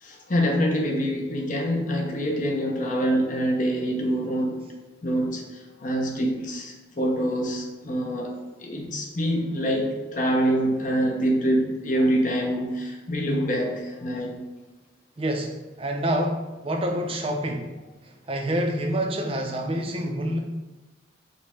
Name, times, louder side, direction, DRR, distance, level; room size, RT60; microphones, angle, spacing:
voice 1, 0.0-4.6 5.0-5.4 5.8-8.3 8.6-14.4, equal, 40° left, 1 dB, 0.6 m, -25 dB
voice 2, 15.2-17.7 18.0-20.4, right 1 dB, 30° right, 2 dB, 0.5 m, -27 dB
5.0 x 2.2 x 4.2 m, 1.1 s
head